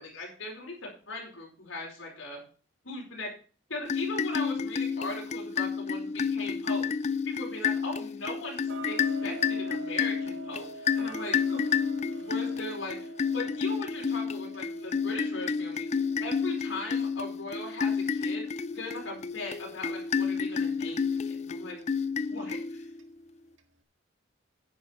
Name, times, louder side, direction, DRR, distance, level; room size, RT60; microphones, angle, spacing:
voice 1, 0.0-2.4 2.8-3.3 3.7-6.9 7.2-11.6 12.1-15.8 16.2-18.5 18.7-21.8 22.3-22.9, left 2 dB, 85° left, -1 dB, 4.7 m, -39 dB
sound 1, 3.8-23.1, left 6 dB, 35° left, 0.5 m, -30 dB
Tick-tock, 8.7-19.5 19.9-20.0 20.6-20.7 21.2-21.3 21.8-21.9 22.4-22.5 23.0-23.1 23.6-23.7, right 3 dB, 80° right, 1.8 m, -47 dB
10.5 x 9.6 x 4.4 m, 0.39 s
head